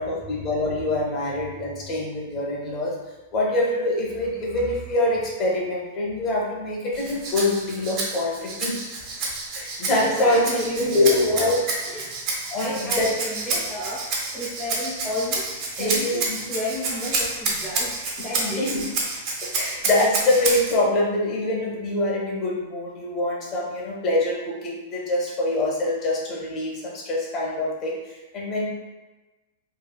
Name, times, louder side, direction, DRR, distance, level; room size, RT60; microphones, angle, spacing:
voice 1, 0.0-2.9 3.3-8.8 9.5-10.4 10.8-11.8 12.5-13.1 15.8-16.4 18.4-18.8 19.5-28.7, left 2 dB, 35° left, -3 dB, 0.8 m, -24 dB
Rattle (instrument), 6.9-20.8, right 3 dB, 45° right, 0.6 m, -29 dB
voice 2, 9.9-11.5 11.8-14.0 14.3-18.7, left 1 dB, 15° left, -7 dB, 0.5 m, -32 dB
3.0 x 2.3 x 2.2 m, 1.1 s
figure-of-eight pair, 100°, 0 cm